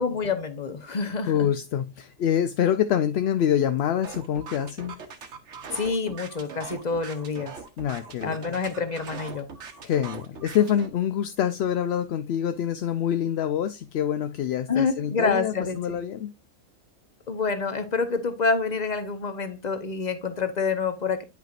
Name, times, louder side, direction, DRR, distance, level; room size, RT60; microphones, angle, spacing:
voice 1, 0.0-1.5 5.7-7.5 8.2-9.5 14.7-15.8 17.3-21.2, left 4 dB, 40° left, 0.9 m, -27 dB
voice 2, 1.3-5.0 7.8-8.4 9.8-16.3, left 9 dB, 65° left, 0.7 m, -26 dB
sound 1, 4.0-10.9, right 4 dB, 65° right, 1.3 m, -41 dB
9.2 x 5.8 x 2.5 m
omnidirectional pair, 1.3 m